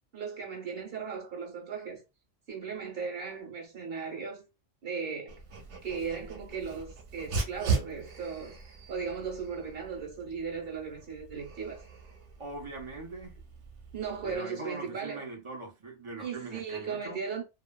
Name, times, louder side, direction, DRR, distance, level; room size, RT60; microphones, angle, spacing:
voice 1, 0.1-2.0 2.5-4.4 4.8-5.4 5.8-8.6 8.9-11.9 13.9-15.2 16.2-17.4, right 6 dB, 55° right, 1.1 m, -37 dB
Dog, 5.3-14.4, right 4 dB, 80° right, 1.1 m, -38 dB
voice 2, 12.4-13.4 14.2-17.2, right 2 dB, 30° right, 0.7 m, -42 dB
2.9 x 2.2 x 2.2 m
omnidirectional pair, 1.2 m